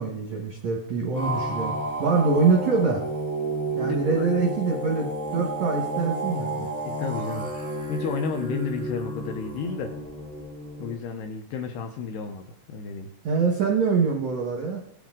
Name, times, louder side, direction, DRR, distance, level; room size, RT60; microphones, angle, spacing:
voice 1, 0.0-1.7 2.0-3.0 3.7-6.7 13.2-14.8, right 4 dB, 80° right, 0 dB, 1.6 m, -24 dB
sound 1, 1.1-10.9, right 2 dB, 10° left, 0.4 m, -31 dB
voice 2, 3.8-4.3 6.8-7.5 7.9-9.9 10.8-13.1, left 5 dB, 80° left, 4 dB, 2.5 m, -32 dB
18.0 x 10.5 x 3.8 m, 0.71 s
omnidirectional pair, 5.6 m